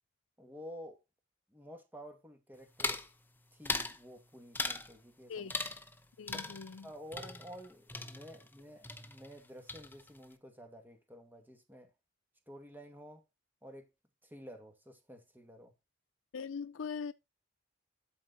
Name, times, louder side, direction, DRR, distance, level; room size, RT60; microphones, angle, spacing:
voice 1, 0.4-1.0 1.5-3.0 3.5-5.5 6.5-11.9 12.5-13.2 13.6-13.9 14.2-15.7, equal, 10° right, 2.2 m, -51 dB
sound 1, 2.8-3.1 3.7-4.0 4.6-4.9 5.5-6.0 6.3-8.6 8.8-9.4 9.7-10.2, left 3 dB, 10° left, 0.9 m, -39 dB
voice 2, 6.2-6.9 16.3-17.1, left 6 dB, 85° left, 0.5 m, -41 dB
12.5 x 4.7 x 4.3 m
head